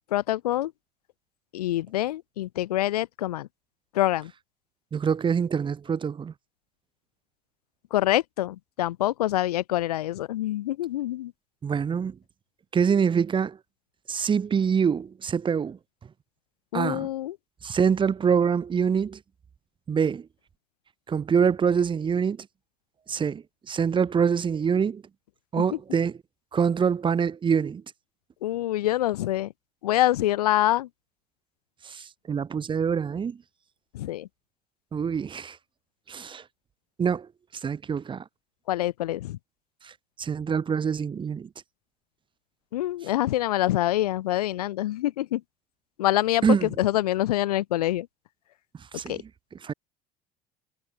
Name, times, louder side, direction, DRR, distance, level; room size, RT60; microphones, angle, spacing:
voice 1, 0.1-0.7 1.5-3.5 3.9-4.3 7.9-11.3 16.7-17.4 25.6-25.7 28.4-29.5 29.8-30.9 33.9-34.3 38.7-39.4 42.7-45.4 46.0-48.1 49.1-49.2, left 14 dB, 75° left, 0.7 m, -25 dB
voice 2, 4.9-6.3 11.6-12.2 12.7-13.6 14.1-15.8 16.7-17.1 17.6-19.2 19.9-20.3 21.1-22.5 23.1-25.0 25.5-26.2 26.5-27.8 31.8-33.4 34.9-35.6 36.1-36.4 37.0-37.3 37.6-38.2 39.8-39.9 40.2-41.5 46.4-46.7 48.9-49.2 49.6-49.7, right 6 dB, 25° right, 0.9 m, -25 dB
figure-of-eight pair, 70°, 20 cm